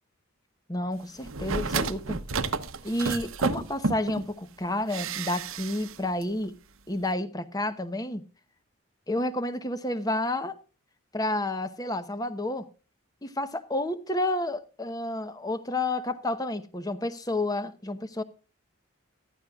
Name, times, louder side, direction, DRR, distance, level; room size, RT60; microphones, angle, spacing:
voice 1, 0.7-2.2 2.8-6.5 6.9-8.2 9.1-10.5 11.1-12.7 13.2-18.2, left 1 dB, 15° left, 0.9 m, -30 dB
sound 1, 1.2-4.2 4.9-5.9 6.2-6.3, right 4 dB, 75° right, 0.9 m, -31 dB
14.5 x 12.5 x 2.4 m
head